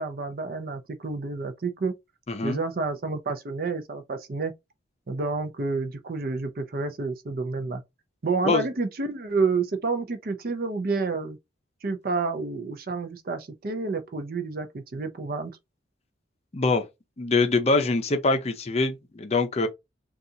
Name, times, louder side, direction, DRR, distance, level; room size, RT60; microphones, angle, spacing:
voice 1, 0.0-1.9 2.4-4.5 5.1-7.8 8.2-11.4 11.8-15.5, right 4 dB, 50° right, 0.5 m, -29 dB
voice 2, 2.3-2.6 8.4-8.6 16.5-16.8 17.2-19.7, left 3 dB, 35° left, 0.5 m, -24 dB
3.9 x 2.4 x 2.7 m
head